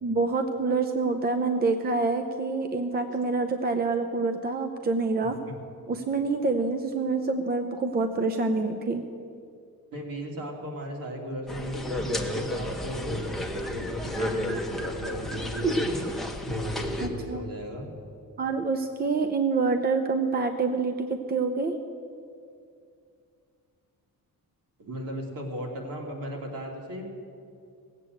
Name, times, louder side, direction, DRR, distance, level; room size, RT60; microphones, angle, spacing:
voice 1, 0.0-5.4 5.9-9.0 17.0-17.4 18.4-21.7, right 3 dB, 25° right, 6 dB, 0.7 m, -27 dB
voice 2, 9.9-16.1 16.4-17.8 24.8-27.1, equal, 70° right, 0 dB, 2.8 m, -36 dB
sound 1, 11.5-17.1, equal, ahead, 1.0 m, -31 dB
17.5 x 8.2 x 7.8 m, 2.4 s
cardioid pair, 150°, 35 cm